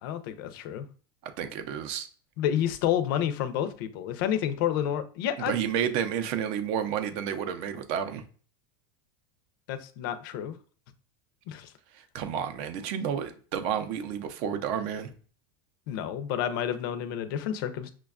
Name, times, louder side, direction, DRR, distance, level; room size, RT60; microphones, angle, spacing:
voice 1, 0.0-0.9 2.4-5.5 9.7-10.6 11.5-11.7 15.9-17.9, left 10 dB, 60° left, 0.5 m, -29 dB
voice 2, 1.2-2.1 5.5-8.2 12.1-15.1, right 8 dB, 50° right, 0.5 m, -31 dB
5.9 x 2.2 x 2.3 m
supercardioid pair, 155°, 13 cm